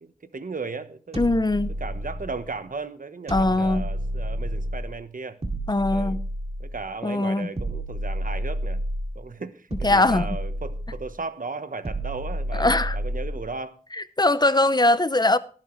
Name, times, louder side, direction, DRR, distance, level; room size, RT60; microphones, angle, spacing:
voice 1, 0.0-1.2 1.8-5.4 5.9-6.2 6.6-8.8 9.1-13.8, right 4 dB, 70° right, 1.0 m, -36 dB
sound 1, 1.1-2.5 3.3-4.9 5.4-6.8 7.6-9.2 9.7-11.1 11.8-13.5, right 1 dB, 45° right, 2.2 m, -30 dB
voice 2, 1.2-1.7 3.3-3.9 5.7-6.2 7.0-7.5 9.8-10.4 12.5-13.0 13.9-15.4, left 2 dB, 30° left, 0.7 m, -21 dB
18.0 x 8.9 x 3.1 m
wide cardioid pair, 45°, 15 cm